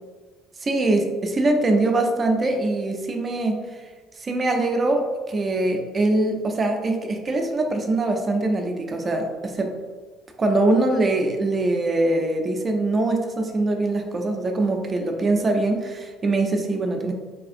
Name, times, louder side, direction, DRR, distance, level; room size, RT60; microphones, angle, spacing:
voice 1, 0.6-3.6 4.2-9.7 10.4-17.1, right 2 dB, 35° right, 4 dB, 0.5 m, -23 dB
3.3 x 2.4 x 2.5 m, 1.4 s
figure-of-eight pair, 55°, 0 cm